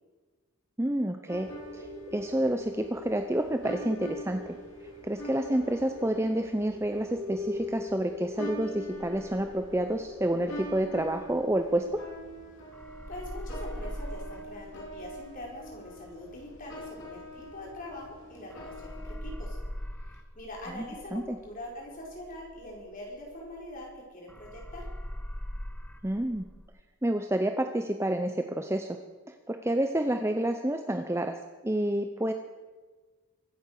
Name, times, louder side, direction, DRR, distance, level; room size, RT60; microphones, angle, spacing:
voice 1, 0.8-4.6 5.0-12.0 20.7-20.8 21.1-21.4 26.0-26.5 27.0-29.0 29.3-32.3, right 1 dB, 10° right, 6 dB, 0.6 m, -29 dB
sound 1, 1.3-19.1, right 1 dB, 55° left, 4.2 m, -45 dB
sound 2, 1.4-11.3, left 3 dB, 85° right, 3.5 m, -42 dB
sound 3, 8.9-12.4 12.7-18.2 18.5-24.0 24.3-26.7, equal, 5° left, 1.1 m, -42 dB
voice 2, 13.1-19.6 20.0-24.8, left 1 dB, 35° left, -2 dB, 4.5 m, -43 dB
23.5 x 8.7 x 6.6 m, 1.4 s
head